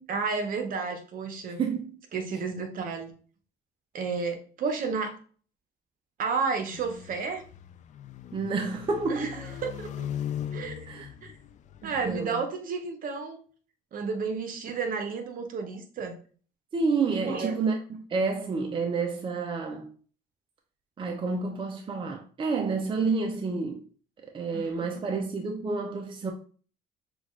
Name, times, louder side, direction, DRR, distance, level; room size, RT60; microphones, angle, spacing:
voice 1, 0.1-1.6 2.1-3.1 3.9-5.2 6.2-7.4 9.1-10.1 10.5-11.3 11.8-13.4 13.9-16.2 17.3-17.5 24.5-24.9, right 5 dB, 55° right, 1.0 m, -32 dB
voice 2, 1.6-2.0 8.3-9.3 10.9-11.1 11.8-12.4 16.7-19.9 21.0-23.8 24.2-26.3, right 4 dB, 30° right, 0.6 m, -29 dB
sound 1, 6.7-12.2, left 9 dB, 45° left, 0.4 m, -39 dB
6.0 x 2.4 x 3.2 m
cardioid pair, 110°, 17 cm